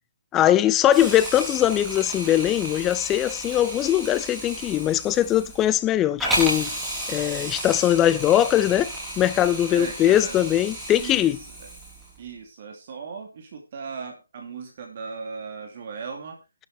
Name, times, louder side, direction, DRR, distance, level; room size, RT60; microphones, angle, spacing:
voice 1, 0.3-6.7 7.1-11.4, left 12 dB, 15° left, 0.5 m, -21 dB
Hiss, 0.9-12.2, right 1 dB, 5° right, 4.8 m, -33 dB
voice 2, 9.7-10.4 11.0-11.7 12.2-16.4, right 5 dB, 40° right, 2.8 m, -37 dB
12.0 x 7.8 x 4.8 m
figure-of-eight pair, 145°, 0 cm